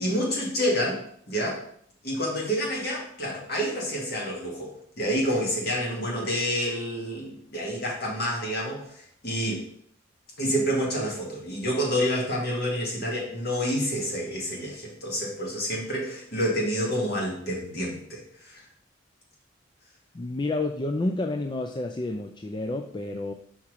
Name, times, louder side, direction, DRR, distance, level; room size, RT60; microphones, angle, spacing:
voice 1, 0.0-1.6 2.0-9.6 10.4-18.6, equal, 55° left, -2 dB, 2.1 m, -28 dB
voice 2, 20.1-23.3, left 2 dB, 25° left, 4 dB, 0.4 m, -29 dB
5.9 x 4.4 x 4.8 m, 0.63 s
head